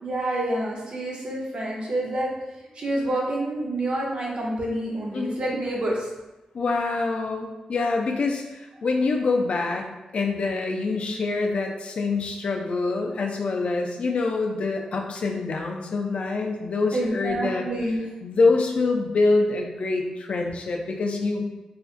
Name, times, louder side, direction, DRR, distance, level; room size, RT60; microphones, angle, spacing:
voice 1, 0.0-2.3 2.7-6.1 16.9-18.1, right 1 dB, 50° right, -2 dB, 0.7 m, -28 dB
voice 2, 6.5-9.9 10.1-17.6 18.2-21.4, left 3 dB, 65° left, 2 dB, 0.4 m, -25 dB
2.8 x 2.4 x 2.4 m, 1.0 s
cardioid pair, 85°, 2 cm